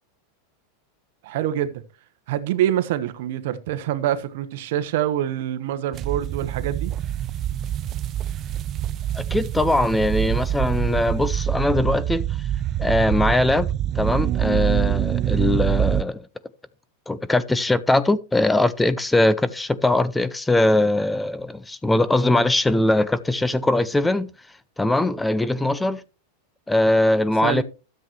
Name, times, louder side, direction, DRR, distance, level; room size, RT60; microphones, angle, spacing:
voice 1, 1.2-1.8 2.3-6.9 27.4-27.6, right 11 dB, 65° right, 1.2 m, -25 dB
sound 1, 5.9-16.0, right 11 dB, 35° right, 0.6 m, -25 dB
voice 2, 9.1-12.2 12.8-13.7 13.9-16.3 17.1-24.3 24.8-26.0 26.7-27.6, left 2 dB, 5° left, 0.6 m, -21 dB
13.0 x 7.8 x 3.1 m
supercardioid pair, 130°, 0 cm